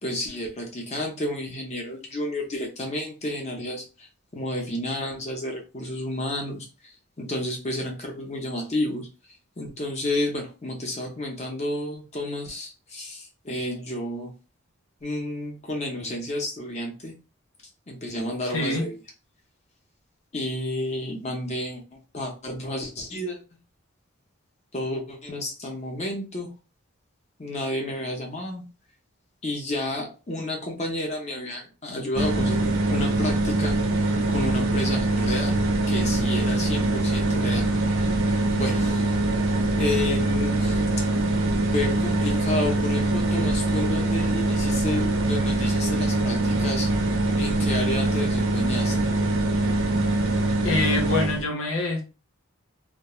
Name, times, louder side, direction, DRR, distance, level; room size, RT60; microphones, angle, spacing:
voice 1, 0.0-4.1 4.3-9.1 9.6-14.3 15.0-17.2 17.9-19.0 20.3-23.4 24.7-26.5 27.4-28.6 29.4-33.8 34.3-35.6 35.9-37.7 38.5-39.1 39.8-40.8 41.7-46.9 47.3-49.1, left 1 dB, 30° left, 0 dB, 0.7 m, -31 dB
voice 2, 18.5-18.9 50.6-52.0, left 2 dB, 70° left, 1 dB, 0.8 m, -25 dB
sound 1, 32.1-51.4, right 2 dB, 70° right, 0.5 m, -23 dB
2.3 x 2.2 x 3.0 m, 0.32 s
head